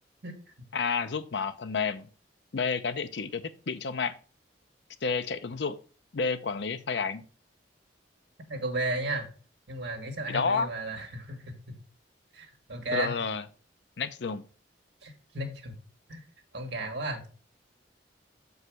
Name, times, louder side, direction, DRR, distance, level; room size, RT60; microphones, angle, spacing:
voice 1, 0.7-2.1 2.5-4.1 5.0-5.8 6.1-7.2 10.3-10.7 12.9-13.4 14.0-14.4, left 5 dB, 65° left, 11 dB, 0.6 m, -30 dB
voice 2, 8.5-9.3 9.7-11.8 12.3-13.1 15.0-15.8 16.1-16.2 16.5-17.3, right 2 dB, 65° right, 3 dB, 1.7 m, -34 dB
6.6 x 4.8 x 4.6 m, 0.37 s
head